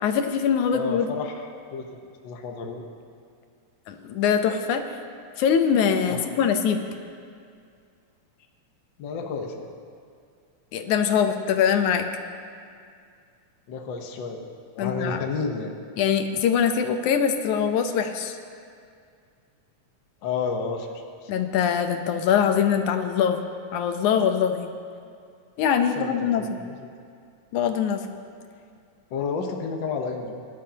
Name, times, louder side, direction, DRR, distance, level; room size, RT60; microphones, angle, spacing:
voice 1, 0.0-1.1 3.9-4.8 5.4-6.8 10.7-12.0 14.8-15.3 16.0-18.4 21.3-23.4 23.7-24.7 25.6-26.6 27.5-28.1, left 7 dB, 85° left, 6 dB, 2.2 m, -23 dB
voice 2, 0.7-2.9 6.1-6.2 9.0-9.7 13.7-14.5 14.7-15.7 20.2-20.9 21.2-21.3 25.9-26.1 26.4-26.9 29.1-30.3, left 5 dB, 60° left, 2 dB, 1.2 m, -31 dB
23.0 x 11.5 x 2.9 m, 2.3 s
omnidirectional pair, 3.4 m